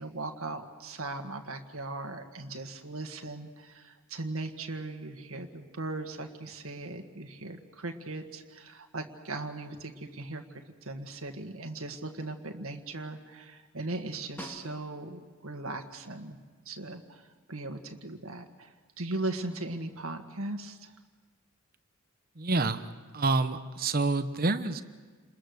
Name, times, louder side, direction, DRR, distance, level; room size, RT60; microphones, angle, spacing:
voice 1, 0.0-16.4 16.6-20.9, right 2 dB, 75° right, 5 dB, 1.8 m, -38 dB
Snare drum, 14.4-15.3 19.7-19.8, equal, 10° left, 2.0 m, -45 dB
voice 2, 22.4-22.9 23.1-24.8, right 3 dB, 45° right, 11 dB, 1.0 m, -27 dB
29.0 x 21.5 x 6.5 m, 1.4 s
head